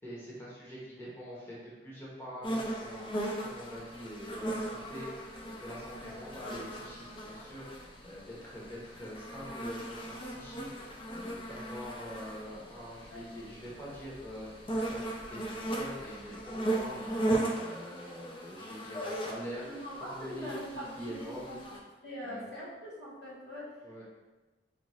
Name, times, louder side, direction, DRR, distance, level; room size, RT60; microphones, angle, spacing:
voice 1, 0.0-3.1 3.4-19.6 20.0-21.6 22.2-22.5 23.8-24.0, equal, 15° left, -7 dB, 0.9 m, -44 dB
sound 1, 2.4-21.8, right 1 dB, 30° left, 0.5 m, -38 dB
voice 2, 18.9-19.3 19.6-21.6 22.0-23.7, left 1 dB, 90° left, -7 dB, 1.5 m, -42 dB
5.1 x 2.3 x 3.0 m, 1.2 s
head